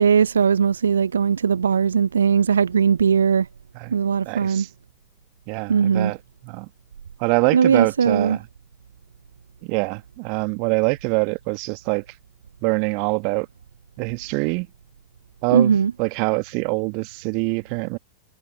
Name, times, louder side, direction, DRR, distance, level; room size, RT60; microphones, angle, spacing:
voice 1, 0.0-3.5 3.9-4.7 5.7-6.1 7.5-8.4 15.5-15.9, right 7 dB, 70° right, 0.4 m, -19 dB
voice 2, 4.2-4.7 5.5-6.2 6.4-6.7 7.2-8.4 9.6-12.0 12.6-13.5 14.0-14.7 15.4-18.0, right 37 dB, 45° right, 1.5 m, -24 dB
figure-of-eight pair, 90°, 0 cm